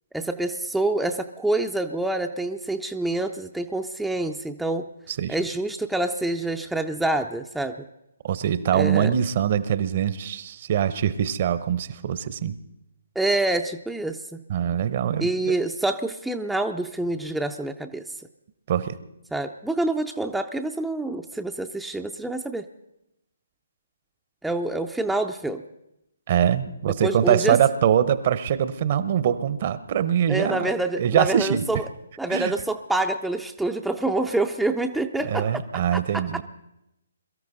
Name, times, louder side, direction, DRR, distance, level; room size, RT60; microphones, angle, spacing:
voice 1, 0.1-4.9 5.3-7.8 8.7-9.1 13.2-14.4 15.2-18.0 19.3-22.7 24.4-25.6 27.0-27.6 30.3-31.8 32.2-35.6 36.1-36.2, right 2 dB, ahead, 4 dB, 0.5 m, -26 dB
voice 2, 8.2-12.6 14.5-15.6 18.7-19.0 26.3-31.7 32.3-32.5 35.2-36.4, right 9 dB, 40° right, 15 dB, 0.8 m, -23 dB
22.5 x 13.5 x 3.9 m, 0.85 s
figure-of-eight pair, 135°, 0 cm